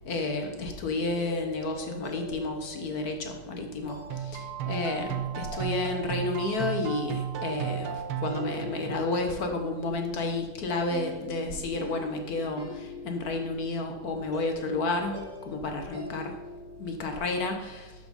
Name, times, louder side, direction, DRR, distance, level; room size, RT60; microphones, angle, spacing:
voice 1, 0.0-15.2 15.5-16.4 16.8-17.9, left 3 dB, 55° left, 4 dB, 1.1 m, -31 dB
sound 1, 0.9-16.8, left 1 dB, 50° right, 2.9 m, -43 dB
sound 2, 4.1-9.3, right 9 dB, 85° right, 1.6 m, -34 dB
11.5 x 4.8 x 5.4 m, 1.2 s
omnidirectional pair, 2.4 m